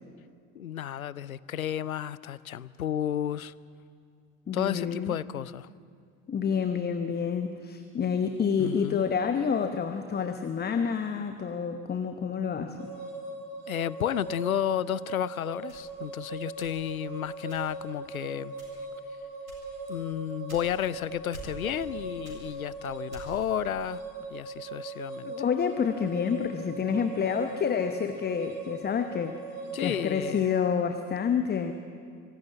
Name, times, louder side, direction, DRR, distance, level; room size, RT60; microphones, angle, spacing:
voice 1, 0.5-3.5 4.5-5.7 8.6-9.0 13.7-18.5 19.9-24.0 24.3-25.3 29.7-30.5, left 10 dB, 85° left, 20 dB, 0.5 m, -32 dB
voice 2, 4.5-5.2 6.3-12.9 25.3-29.4 29.8-31.7, left 6 dB, 25° left, 8 dB, 1.0 m, -28 dB
sound 1, 12.8-30.6, right 3 dB, 55° right, 5.4 m, -40 dB
sound 2, 15.7-17.1 17.5-17.9 18.5-19.0 19.5-21.0 21.3-21.9 22.2-23.5, equal, 90° right, 3.8 m, -47 dB
24.5 x 11.5 x 9.6 m, 2.2 s
figure-of-eight pair, 65°, 41 cm